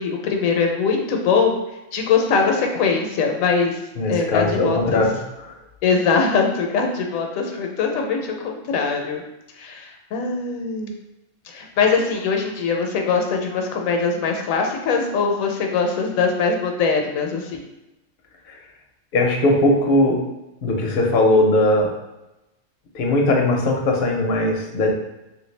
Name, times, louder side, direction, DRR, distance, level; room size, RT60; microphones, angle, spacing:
voice 1, 0.0-1.6 1.9-3.8 4.1-5.0 5.8-9.2 9.6-10.9 11.5-17.6, left 5 dB, 80° left, 2 dB, 1.0 m, -22 dB
voice 2, 4.0-5.5 19.1-20.2 20.6-21.9 22.9-24.9, left 1 dB, 60° left, 1 dB, 0.7 m, -19 dB
3.1 x 2.5 x 3.1 m, 0.96 s
omnidirectional pair, 1.4 m